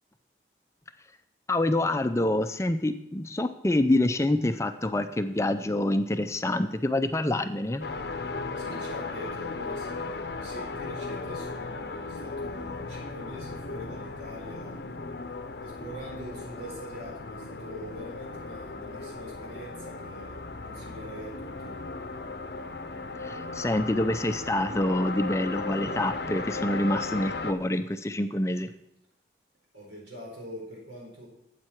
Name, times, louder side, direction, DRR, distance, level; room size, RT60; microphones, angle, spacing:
voice 1, 1.5-7.9 23.2-28.7, left 1 dB, 15° left, 9 dB, 0.4 m, -26 dB
sound 1, 7.8-27.5, left 3 dB, 60° left, 0.6 m, -36 dB
voice 2, 8.6-14.9 15.6-21.8 29.7-31.3, equal, 85° right, -2 dB, 4.5 m, -43 dB
12.5 x 8.5 x 4.5 m, 0.81 s
head